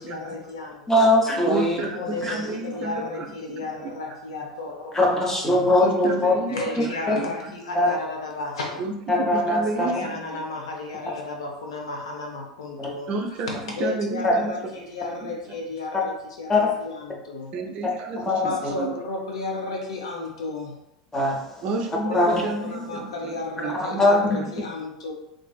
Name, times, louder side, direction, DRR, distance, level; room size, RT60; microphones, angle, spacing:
voice 1, 0.0-1.1 1.9-5.2 5.6-5.7 6.5-8.8 9.8-17.5 18.4-20.8 22.0-25.1, left 3 dB, 75° left, 0 dB, 0.5 m, -33 dB
voice 2, 0.9-1.8 2.2-2.4 4.9-6.3 7.1-7.2 7.7-7.9 9.1-9.9 12.8-12.9 14.2-14.3 16.5-16.6 18.2-18.4 21.1-21.4 22.1-22.4 24.0-24.4, left 2 dB, 15° left, -1 dB, 0.7 m, -20 dB
voice 3, 1.4-3.0 3.5-3.6 5.7-7.3 8.8-10.1 13.1-13.5 13.8-14.5 15.2-15.3 17.5-18.9 21.6-24.0, right 3 dB, 45° right, 2 dB, 0.4 m, -31 dB
2.5 x 2.4 x 2.3 m, 0.84 s
figure-of-eight pair, 80°, 3 cm